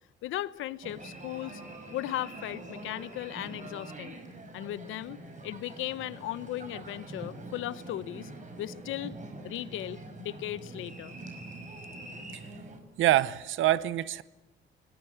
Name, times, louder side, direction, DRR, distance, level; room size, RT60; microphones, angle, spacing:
voice 1, 0.2-1.6 1.9-4.2 4.5-8.3 8.6-9.2 9.4-11.1, left 14 dB, 85° left, 1.0 m, -37 dB
sound 1, 0.8-12.8, right 2 dB, 40° right, 5.3 m, -44 dB
voice 2, 13.0-14.2, right 14 dB, 80° right, 0.9 m, -25 dB
25.5 x 20.0 x 8.0 m
cardioid pair, 90°, 20 cm